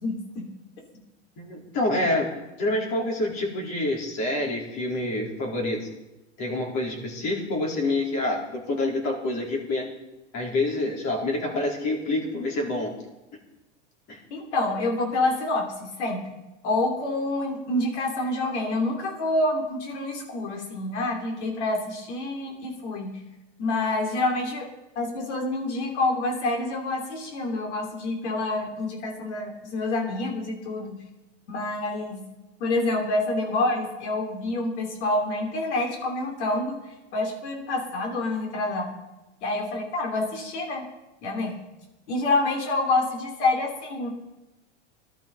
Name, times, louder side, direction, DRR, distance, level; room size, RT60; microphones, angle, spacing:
voice 1, 0.0-0.5 14.3-16.3 16.6-23.1 23.6-24.7 24.9-31.0 31.5-32.2 32.6-36.8 37.1-38.9 39.4-40.8 41.2-41.6 42.1-44.1, left 2 dB, 80° left, 1 dB, 3.2 m, -27 dB
voice 2, 1.4-2.3 2.6-5.9 6.4-9.9 10.3-12.9 14.1-14.2, left 2 dB, 50° left, -2 dB, 4.4 m, -27 dB
15.0 x 12.5 x 5.3 m, 1.0 s
supercardioid pair, 110°, 34 cm